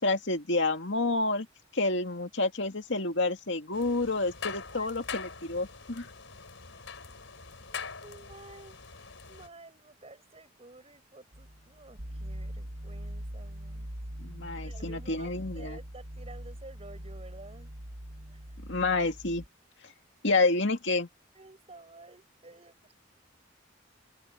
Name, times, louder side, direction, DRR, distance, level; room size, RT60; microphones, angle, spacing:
voice 1, 0.0-1.5 1.7-6.1 14.2-15.8 18.7-19.4 20.2-21.1, left 3 dB, 70° left, 2.4 m, -29 dB
sound 1, 3.7-9.5, left 5 dB, 90° left, 4.3 m, -43 dB
voice 2, 7.7-13.9 14.6-17.7 18.3-18.4 21.3-23.0, right 2 dB, 30° right, 7.5 m, -52 dB
sound 2, 11.3-19.5, equal, 85° right, 2.3 m, -42 dB
head